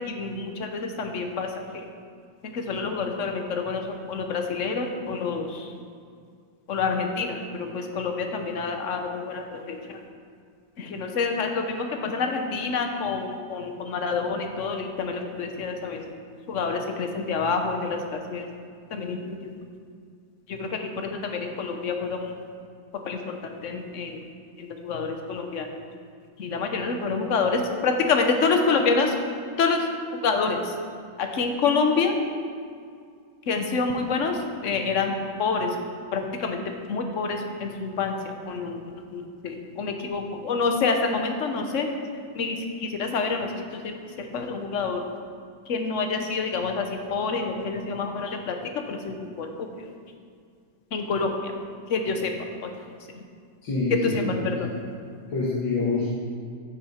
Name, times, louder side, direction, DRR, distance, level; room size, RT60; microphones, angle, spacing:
voice 1, 0.1-1.5 1.7-1.9 2.4-5.7 6.7-10.0 10.8-16.1 16.5-18.4 18.9-19.5 20.5-22.3 23.0-24.2 24.6-25.7 26.4-29.1 29.6-29.9 30.2-30.7 31.2-32.2 33.5-35.8 36.1-36.6 36.9-38.8 39.1-41.9 42.3-45.0 45.7-49.5 50.9-51.5 51.9-52.3 52.6-52.7 54.1-54.7, left 4 dB, 50° left, 4 dB, 1.1 m, -27 dB
voice 2, 53.6-54.6 55.3-56.1, left 3 dB, 90° left, -7 dB, 2.6 m, -26 dB
14.0 x 6.7 x 4.3 m, 2.2 s
omnidirectional pair, 2.0 m